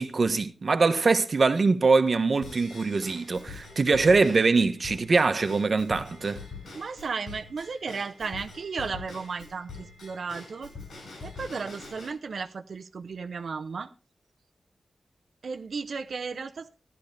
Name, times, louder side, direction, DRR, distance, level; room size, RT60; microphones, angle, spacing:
voice 1, 0.0-6.4, right 4 dB, 45° right, 1.3 m, -23 dB
Drum kit / Drum / Bell, 2.4-12.1, left 4 dB, 80° left, 7.0 m, -44 dB
voice 2, 6.7-10.7 11.2-13.9 15.4-16.7, right 5 dB, 65° right, 0.8 m, -34 dB
14.5 x 12.5 x 3.4 m
wide cardioid pair, 155°, 0 cm